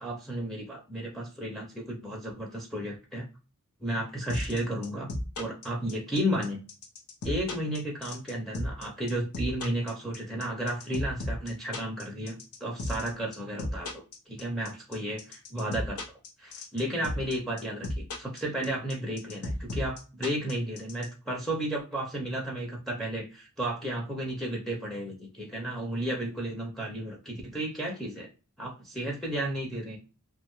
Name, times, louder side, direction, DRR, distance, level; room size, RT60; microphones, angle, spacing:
voice 1, 0.0-3.3 3.8-5.1 5.4-6.6 7.2-16.0 16.4-28.3 28.6-30.0, right 1 dB, ahead, -3 dB, 0.5 m, -33 dB
sound 1, 4.3-21.1, left 1 dB, 80° left, 0.7 m, -34 dB
2.5 x 2.2 x 3.0 m, 0.33 s
head